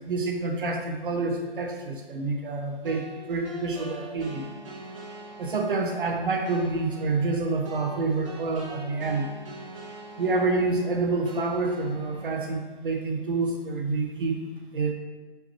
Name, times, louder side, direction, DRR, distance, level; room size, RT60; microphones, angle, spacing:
voice 1, 0.0-4.4 5.4-9.3 10.2-14.4 14.7-14.9, right 3 dB, 55° right, 3 dB, 1.0 m, -27 dB
sound 1, 2.8-12.4, right 2 dB, 30° right, 1.1 m, -43 dB
7.8 x 5.7 x 3.0 m, 1.3 s
hypercardioid pair, 165°, 31 cm